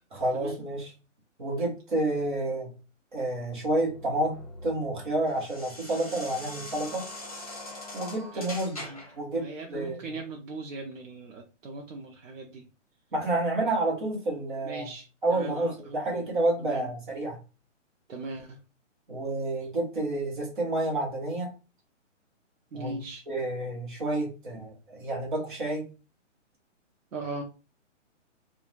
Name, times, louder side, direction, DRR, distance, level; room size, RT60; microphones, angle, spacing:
voice 1, 0.1-0.9 1.4-2.7 3.1-4.3 4.6-7.1 7.9-8.8 9.2-10.2 13.1-14.9 15.2-17.4 19.1-21.5 22.7-23.0 23.3-25.9, right 1 dB, 40° right, 0 dB, 0.9 m, -29 dB
sound 1, 3.4-9.2, left 2 dB, 30° left, 0.4 m, -42 dB
voice 2, 9.3-12.7 14.6-15.0 15.3-16.2 16.6-16.8 18.1-18.6 22.7-23.2 27.1-27.4, right 3 dB, 90° right, 0 dB, 0.7 m, -39 dB
2.5 x 2.2 x 3.0 m, 0.32 s
hypercardioid pair, 175°, 38 cm